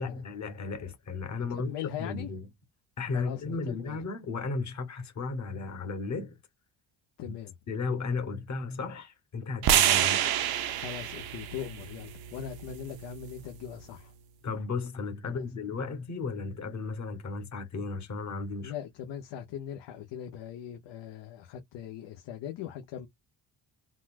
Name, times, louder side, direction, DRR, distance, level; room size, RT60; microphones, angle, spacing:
voice 1, 0.0-2.5 3.0-6.4 7.3-7.4 7.7-10.2 14.4-18.7, left 4 dB, 40° left, 1.2 m, -34 dB
voice 2, 1.5-2.3 3.1-4.0 7.2-7.5 10.7-14.1 15.2-15.4 18.6-23.1, left 9 dB, 75° left, 0.8 m, -40 dB
sound 1, 9.6-13.8, right 10 dB, 60° right, 0.7 m, -28 dB
4.0 x 2.3 x 2.4 m
cardioid pair, 130°, 43 cm